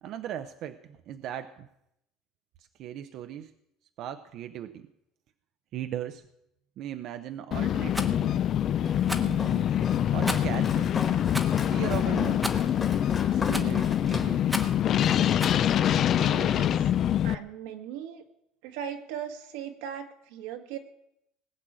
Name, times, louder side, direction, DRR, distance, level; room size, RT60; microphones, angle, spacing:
voice 1, 0.0-1.7 2.8-3.5 4.0-4.9 5.7-6.3 6.8-8.4 9.0-9.7 10.1-10.9 11.7-12.4 13.3-14.5, right 10 dB, 45° right, 9 dB, 0.7 m, -38 dB
sound 1, 7.5-17.3, left 10 dB, 35° left, 0.5 m, -25 dB
Rattle, 7.9-8.1 9.0-9.4 10.2-10.6 11.3-11.6 12.4-12.7 13.5-13.8 14.5-14.8 15.4-15.6, equal, ahead, 1.1 m, -34 dB
Walk footsteps, 8.8-15.3, left 4 dB, 20° left, 1.7 m, -37 dB
voice 2, 16.2-16.9 17.2-18.2 18.6-20.8, right 9 dB, 85° right, 5 dB, 1.9 m, -38 dB
19.0 x 6.5 x 8.9 m, 0.80 s
cardioid pair, 165°, 0 cm